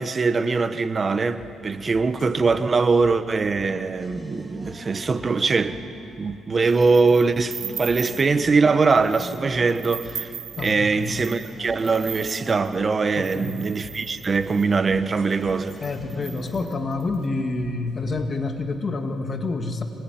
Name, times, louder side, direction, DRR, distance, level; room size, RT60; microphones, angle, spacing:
voice 1, 0.0-5.8 6.2-10.3 10.6-15.8, right 4 dB, 35° right, 1.3 m, -22 dB
sound 1, 1.1-18.4, left 4 dB, 75° left, 6.9 m, -48 dB
sound 2, 4.0-7.0 7.4-14.0 14.4-17.1, equal, 5° right, 2.0 m, -43 dB
sound 3, 6.7-8.4 8.8-9.4 9.7-14.7 15.3-15.4 15.6-17.2, right 9 dB, 65° right, 0.9 m, -38 dB
voice 2, 10.6-11.2 13.2-13.7 15.8-19.8, left 3 dB, 35° left, 2.1 m, -28 dB
26.0 x 21.5 x 9.3 m
cardioid pair, 90°, 0 cm